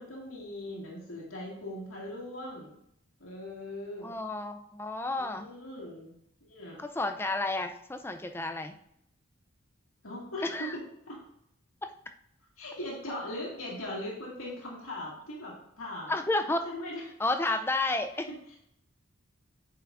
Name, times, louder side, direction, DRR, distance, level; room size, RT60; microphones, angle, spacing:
voice 1, 0.0-2.8 3.2-4.2 5.2-6.1 6.5-6.8 10.0-10.8 11.1-11.2 12.6-16.1 16.6-17.0 17.4-17.6 18.3-18.6, left 1 dB, 85° left, -4 dB, 1.9 m, -40 dB
voice 2, 4.0-5.5 6.8-8.7 10.4-10.7 11.8-11.9 16.1-16.6 17.2-18.3, left 2 dB, 10° left, 6 dB, 0.4 m, -31 dB
8.8 x 5.7 x 2.5 m, 0.73 s
head